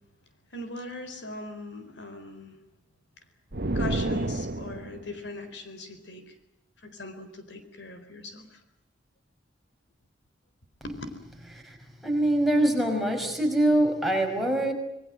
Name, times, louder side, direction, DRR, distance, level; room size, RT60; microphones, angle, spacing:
voice 1, 0.5-2.6 3.7-6.3 6.8-8.6 10.8-10.9, left 2 dB, 65° left, 8 dB, 4.1 m, -40 dB
sound 1, 3.5-5.1, right 2 dB, 55° right, 1.2 m, -29 dB
voice 2, 12.0-14.7, right 1 dB, ahead, 1 dB, 5.6 m, -24 dB
26.5 x 22.0 x 7.6 m, 0.86 s
head